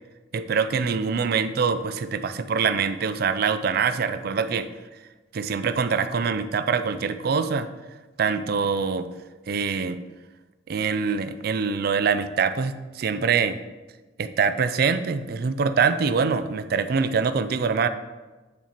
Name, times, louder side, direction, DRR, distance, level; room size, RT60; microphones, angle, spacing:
voice 1, 0.3-4.7 5.3-7.7 8.2-9.1 9.5-10.0 10.7-13.6 14.2-17.9, right 5 dB, 55° right, 11 dB, 0.4 m, -24 dB
7.9 x 7.1 x 2.9 m, 1.2 s
head